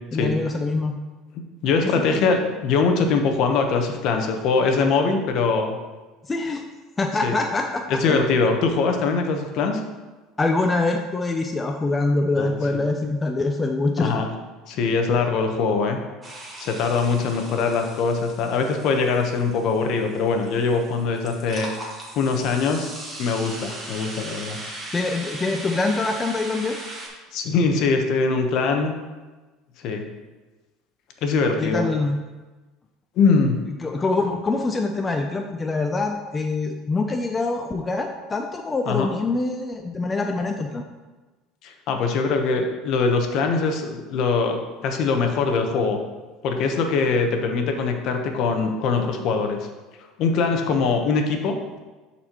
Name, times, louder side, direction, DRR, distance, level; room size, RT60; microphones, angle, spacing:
voice 1, 0.1-0.9 1.8-2.2 6.2-6.6 7.0-8.2 10.4-14.1 24.9-26.8 31.6-32.2 33.8-40.8, left 3 dB, 15° left, 3 dB, 0.5 m, -24 dB
voice 2, 1.6-5.7 7.2-7.3 7.9-9.8 12.3-12.6 14.0-14.3 14.7-16.0 16.6-21.7 22.2-22.9 23.2-24.6 27.3-28.9 29.8-30.0 31.2-31.8 33.2-33.6 38.9-39.1 41.6-46.0 46.4-49.6 50.2-51.5, left 4 dB, 55° left, 5 dB, 0.9 m, -22 dB
sound 1, 16.2-27.1, right 1 dB, 15° right, 1.6 m, -38 dB
11.0 x 4.2 x 3.0 m, 1.2 s
cardioid pair, 130°, 0 cm